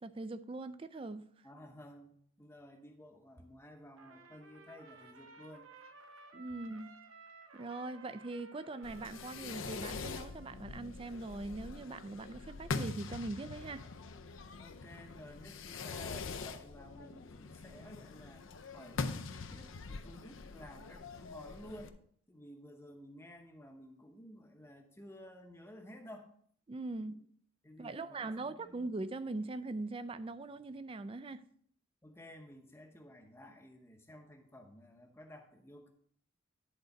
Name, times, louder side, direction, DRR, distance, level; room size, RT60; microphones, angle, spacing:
voice 1, 0.0-1.3 6.3-6.9 7.5-13.9 26.7-27.2 27.8-31.5, right 2 dB, 25° right, 0.3 m, -41 dB
voice 2, 1.4-5.7 14.6-18.5 18.7-22.0 22.3-26.3 27.0-27.2 27.6-28.8 32.0-35.9, left 1 dB, 10° left, 0.8 m, -54 dB
Trumpet, 3.9-10.7, right 3 dB, 75° right, 0.9 m, -56 dB
Fireworks, 8.8-21.9, left 4 dB, 70° left, 0.6 m, -43 dB
10.5 x 3.9 x 5.1 m
head